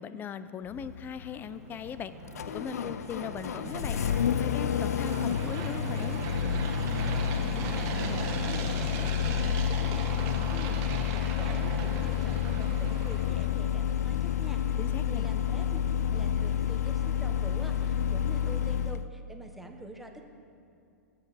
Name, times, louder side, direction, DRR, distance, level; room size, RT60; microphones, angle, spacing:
voice 1, 0.0-2.1 2.5-6.2 14.8-15.3, left 7 dB, 25° left, 13 dB, 0.5 m, -39 dB
Engine starting, 0.7-19.1, left 9 dB, 80° left, 0.4 m, -30 dB
sound 1, 1.4-13.7, right 5 dB, 40° right, 1.4 m, -38 dB
voice 2, 7.5-14.8 15.0-15.8 16.1-20.3, equal, ahead, 3 dB, 1.1 m, -45 dB
18.0 x 7.9 x 4.2 m, 2.6 s
hypercardioid pair, 105°, 8 cm